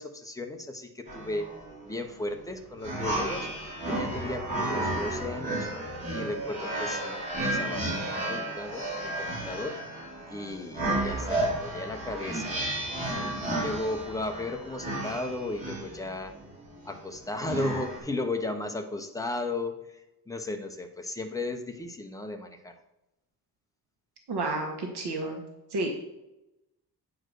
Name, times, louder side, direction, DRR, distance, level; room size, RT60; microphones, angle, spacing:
voice 1, 0.0-1.5 1.8-3.5 3.9-5.7 6.1-9.8 10.3-12.7 13.5-16.4 16.8-20.0 20.3-22.7, left 2 dB, 10° left, 4 dB, 0.7 m, -35 dB
sound 1, 1.1-18.0, right 1 dB, 20° right, 3.6 m, -33 dB
voice 2, 24.3-25.4 25.7-25.9, right 2 dB, 75° right, 2 dB, 1.5 m, -30 dB
9.1 x 4.8 x 6.4 m, 0.93 s
wide cardioid pair, 170°, 40 cm